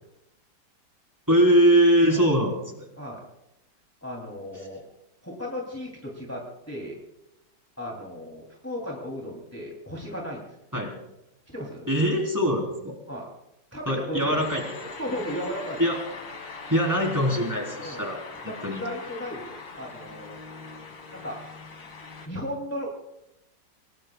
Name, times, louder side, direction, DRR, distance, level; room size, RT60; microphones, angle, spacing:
voice 1, 1.3-2.9 10.7-10.9 11.9-12.9 13.9-14.6 15.8-16.0 16.7-18.2 18.6-18.8, equal, 10° right, -1 dB, 3.9 m, -22 dB
voice 2, 4.0-4.8 5.2-7.0 7.8-10.6 11.5-11.9 13.1-13.3 13.7-14.4 15.0-15.8 17.8-18.1 18.4-20.4 21.1-21.4 22.3-23.0, equal, 5° left, -2 dB, 3.0 m, -35 dB
sound 1, 14.3-22.3, left 4 dB, 90° left, 2.9 m, -41 dB
28.0 x 19.5 x 2.4 m, 0.89 s
omnidirectional pair, 2.0 m